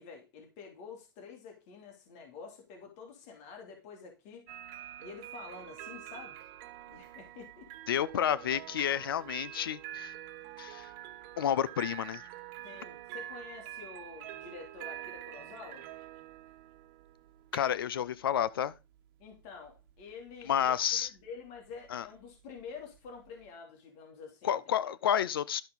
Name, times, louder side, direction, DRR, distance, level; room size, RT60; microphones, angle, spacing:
voice 1, 0.0-4.4 5.0-6.4 6.9-7.7 12.6-15.9 19.2-24.6 24.8-24.9, left 5 dB, 55° left, 3.1 m, -48 dB
sound 1, 4.5-23.5, right 13 dB, 60° right, 1.3 m, -47 dB
voice 2, 7.9-10.1 10.6-10.9 11.4-12.2 17.5-18.7 20.5-21.1 21.9-22.1 24.4-25.6, left 9 dB, 90° left, 0.5 m, -30 dB
12.5 x 5.6 x 4.0 m
hypercardioid pair, 110°, 12 cm